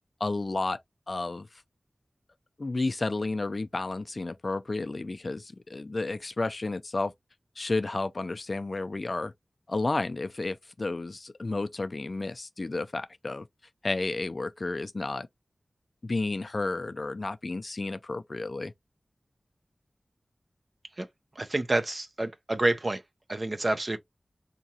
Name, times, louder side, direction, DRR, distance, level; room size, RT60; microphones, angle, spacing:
voice 1, 0.2-0.8 1.1-1.5 2.6-7.1 7.6-9.3 9.7-13.5 13.8-15.3 16.0-18.7, left 3 dB, 55° left, 0.4 m, -31 dB
voice 2, 21.4-23.0 23.3-24.0, right 2 dB, 45° right, 0.7 m, -28 dB
3.7 x 2.9 x 2.8 m
wide cardioid pair, 50°, 0 cm